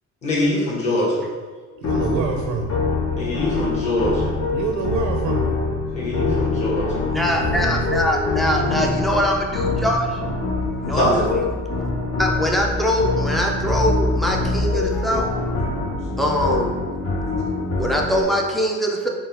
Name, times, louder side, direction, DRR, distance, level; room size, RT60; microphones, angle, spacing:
voice 1, 0.2-1.1 3.2-4.3 5.9-7.1 10.9-11.2, left 1 dB, 25° left, -7 dB, 1.1 m, -22 dB
sound 1, 1.8-18.2, left 3 dB, 50° left, 0.8 m, -24 dB
voice 2, 1.8-2.7 4.5-5.5 7.2-8.1, right 5 dB, 75° right, 2 dB, 0.5 m, -26 dB
voice 3, 7.1-10.0 10.8-11.4 12.2-15.3 16.2-16.7 17.8-19.1, equal, ahead, 0 dB, 0.3 m, -22 dB
3.9 x 2.3 x 4.0 m, 1.4 s
cardioid pair, 150°, 30 cm